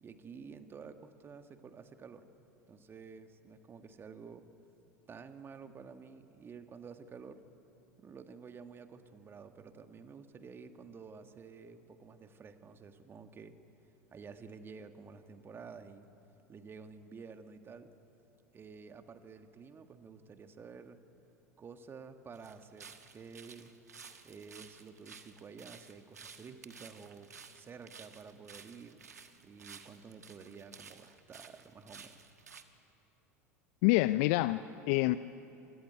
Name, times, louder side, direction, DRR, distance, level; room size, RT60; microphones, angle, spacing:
voice 1, 0.0-2.3 2.7-4.5 5.1-7.4 8.0-13.6 14.1-16.1 16.5-17.9 18.5-21.0 21.6-23.7 24.2-29.0 29.4-32.1, right 5 dB, 25° right, 8 dB, 1.8 m, -51 dB
sound 1, 22.3-32.6, right 6 dB, 85° right, 1.3 m, -54 dB
voice 2, 33.8-35.2, left 19 dB, 55° left, 14 dB, 0.5 m, -27 dB
26.0 x 19.0 x 9.3 m, 2.9 s
figure-of-eight pair, 80°, 8 cm